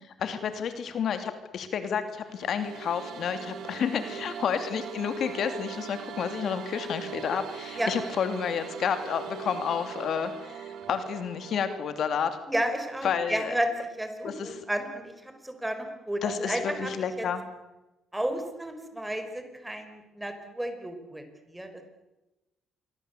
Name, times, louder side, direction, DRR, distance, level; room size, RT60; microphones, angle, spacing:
voice 1, 0.2-12.4 13.0-13.5 14.2-14.5 16.2-17.4, left 7 dB, 65° left, 9 dB, 2.8 m, -30 dB
sound 1, 2.2-12.3, right 10 dB, 75° right, 2.2 m, -41 dB
voice 2, 12.5-17.3 18.1-21.8, right 1 dB, 10° right, 7 dB, 5.0 m, -32 dB
27.5 x 23.5 x 8.2 m, 1.0 s
cardioid pair, 105°, 0 cm